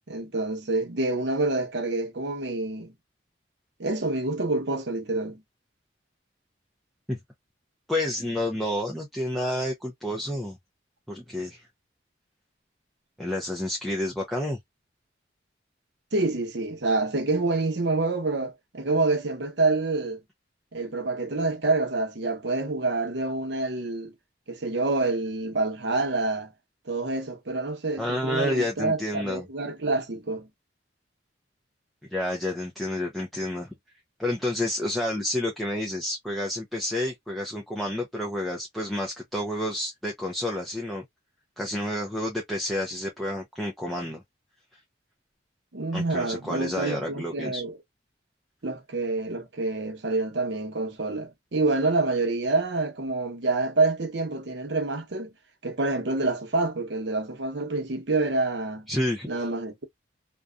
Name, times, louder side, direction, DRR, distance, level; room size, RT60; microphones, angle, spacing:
voice 1, 0.1-2.9 3.8-5.4 16.1-20.2 20.7-24.1 24.5-26.5 26.9-30.5 45.7-47.8 48.6-55.3 55.6-58.9 59.3-59.9, right 3 dB, 65° right, 0.8 m, -27 dB
voice 2, 7.9-10.6 11.1-11.7 13.2-14.6 28.0-29.5 32.0-33.7 34.2-41.0 41.6-44.2 45.9-47.6 58.9-59.5, left 1 dB, ahead, 0.4 m, -29 dB
2.6 x 2.3 x 2.3 m
head